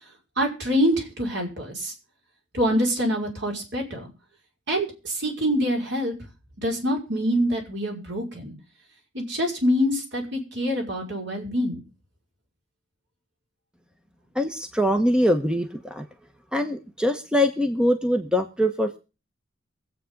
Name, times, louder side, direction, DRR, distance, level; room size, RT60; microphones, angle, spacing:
voice 1, 0.4-1.9 2.5-4.1 4.7-6.1 6.6-8.5 9.1-11.8, equal, 60° right, 2 dB, 5.5 m, -25 dB
voice 2, 14.3-16.0 16.5-19.0, equal, 5° right, 7 dB, 1.1 m, -23 dB
23.5 x 8.4 x 3.9 m, 0.33 s
head